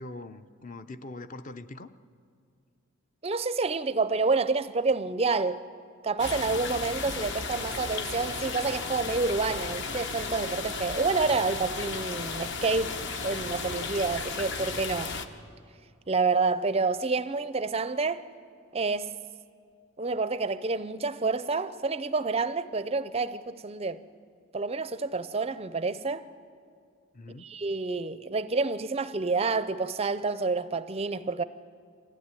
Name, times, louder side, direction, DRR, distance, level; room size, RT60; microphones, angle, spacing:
voice 1, 0.0-1.9 27.1-27.5, left 2 dB, 35° left, 0.6 m, -42 dB
voice 2, 3.2-5.6 6.0-15.2 16.1-18.2 18.7-19.1 20.0-24.0 24.5-26.3 27.4-31.4, right 4 dB, 25° right, 0.5 m, -28 dB
rain medium drain XY, 6.2-15.3, left 4 dB, 55° left, 1.1 m, -34 dB
24.0 x 15.5 x 9.7 m
head